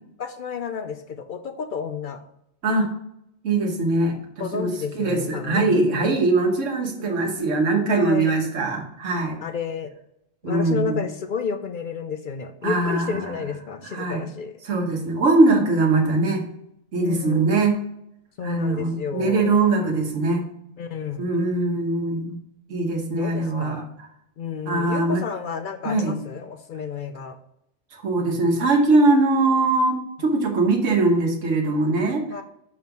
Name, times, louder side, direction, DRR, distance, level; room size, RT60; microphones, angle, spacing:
voice 1, 0.2-2.2 4.4-6.1 7.6-8.3 9.4-9.9 10.4-14.5 17.0-17.6 18.4-19.6 20.8-21.5 23.1-23.9 24.4-27.4 30.2-30.3 32.3-32.4, left 6 dB, 60° left, 8 dB, 0.5 m, -31 dB
voice 2, 3.4-4.7 4.9-9.4 10.4-11.0 12.6-13.4 13.8-14.2 14.6-16.4 16.9-17.8 18.4-20.4 21.2-22.4 22.7-24.1 24.7-25.2 25.8-26.2 27.9-32.2, right 3 dB, 80° right, 2 dB, 1.4 m, -21 dB
5.3 x 4.8 x 4.6 m, 0.78 s
omnidirectional pair, 1.3 m